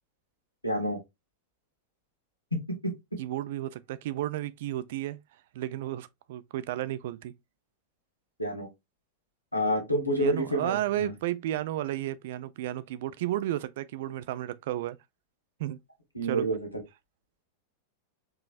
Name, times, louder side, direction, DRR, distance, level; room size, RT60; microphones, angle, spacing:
voice 1, 0.6-1.0 2.5-2.6 8.4-8.7 9.5-11.1 16.1-16.6, equal, 85° left, 1.3 m, -28 dB
voice 2, 3.2-5.2 5.5-7.3 10.2-15.0 15.6-15.8 16.2-16.5, right 14 dB, 55° right, 0.3 m, -33 dB
4.6 x 2.9 x 2.4 m
figure-of-eight pair, 90°, 0 cm